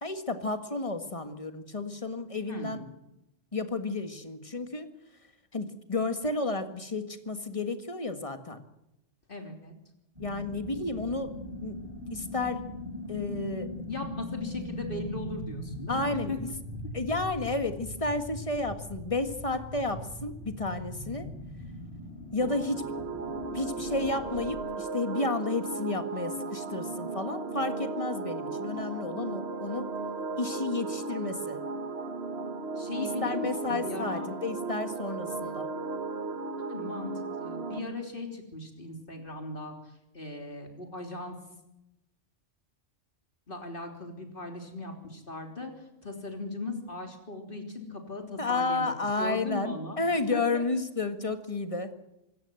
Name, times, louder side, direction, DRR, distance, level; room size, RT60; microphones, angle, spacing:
voice 1, 0.0-2.8 3.5-4.9 5.5-8.6 10.2-11.3 11.6-11.8 12.1-12.6 13.1-13.7 15.9-16.5 16.9-21.3 22.3-22.9 23.5-29.9 30.4-31.6 33.2-35.7 48.4-51.9, left 3 dB, 25° left, 8 dB, 1.7 m, -32 dB
voice 2, 2.5-2.8 9.3-9.7 13.9-16.4 32.8-34.3 36.7-39.7 40.1-41.4 43.5-45.7 46.0-50.0 50.3-50.7, left 2 dB, 45° left, 3 dB, 3.6 m, -38 dB
sound 1, 10.1-24.5, left 1 dB, 30° right, 7.4 m, -40 dB
sound 2, 22.4-37.8, right 3 dB, 55° right, 1.7 m, -35 dB
25.5 x 14.0 x 7.8 m, 0.89 s
omnidirectional pair, 1.3 m